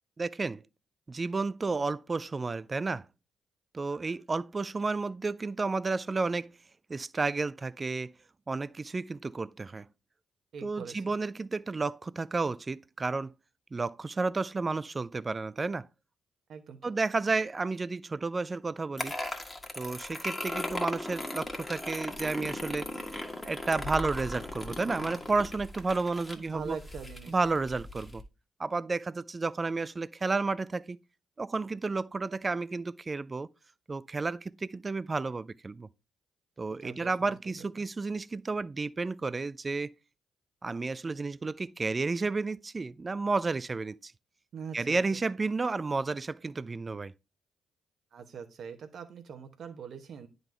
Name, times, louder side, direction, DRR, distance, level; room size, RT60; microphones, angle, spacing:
voice 1, 0.2-0.6 1.1-3.1 3.7-6.5 6.9-8.1 8.5-9.8 10.6-13.3 13.7-15.9 16.8-19.1 19.8-22.9 23.4-26.8 27.3-28.2 28.6-31.0 31.4-33.5 33.9-35.9 36.6-39.9 40.6-44.1 44.7-47.1, right 3 dB, 35° right, 0.3 m, -32 dB
voice 2, 10.5-11.0 16.5-16.8 26.3-27.3 36.8-37.6 44.5-45.0 48.1-50.3, right 6 dB, 60° right, 1.0 m, -42 dB
sound 1, 19.0-28.2, left 1 dB, 15° left, 1.5 m, -38 dB
10.5 x 3.9 x 3.2 m
hypercardioid pair, 40°, 0 cm